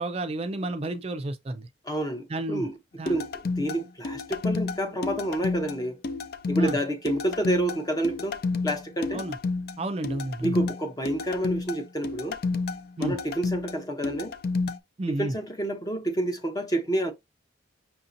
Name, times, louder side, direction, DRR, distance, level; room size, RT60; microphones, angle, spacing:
voice 1, 0.0-1.7 2.3-2.7 3.0-3.1 6.6-6.8 9.1-9.3 9.8-10.6 13.0-13.2 15.0-15.3, right 2 dB, 30° right, 0.4 m, -31 dB
voice 2, 1.8-2.7 3.0-6.0 6.5-9.2 10.4-12.4 13.0-14.3 15.1-17.1, right 1 dB, 20° left, 0.7 m, -29 dB
sound 1, 3.1-14.8, left 3 dB, 50° left, 0.4 m, -30 dB
5.7 x 2.7 x 2.6 m
head